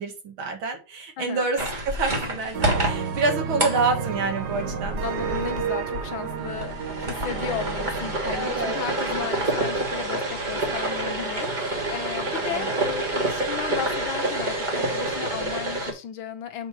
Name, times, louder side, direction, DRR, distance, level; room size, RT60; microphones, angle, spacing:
voice 1, 0.0-5.0 8.3-8.8 9.4-9.5 12.4-12.7, right 3 dB, 85° right, 2.5 m, -28 dB
voice 2, 1.2-1.5 5.0-16.7, left 9 dB, 80° left, 1.7 m, -35 dB
sound 1, 1.6-15.9, right 1 dB, 25° right, 1.5 m, -28 dB
sound 2, 2.5-10.2, right 7 dB, 60° right, 1.6 m, -32 dB
6.8 x 3.2 x 5.9 m
omnidirectional pair, 2.2 m